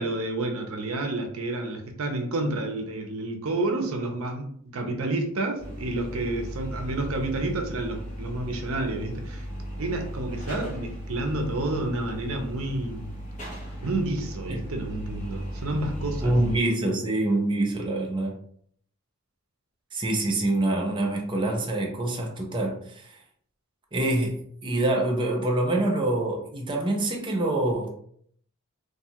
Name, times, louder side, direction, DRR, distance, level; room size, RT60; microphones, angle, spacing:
voice 1, 0.0-9.5 9.8-13.1 13.8-16.3, right 2 dB, 70° right, 0.6 m, -30 dB
sound 1, 5.6-16.6, equal, 35° left, 0.9 m, -36 dB
voice 2, 16.2-18.3 19.9-23.2 23.9-27.9, right 2 dB, 20° right, 0.4 m, -26 dB
2.6 x 2.3 x 2.8 m
head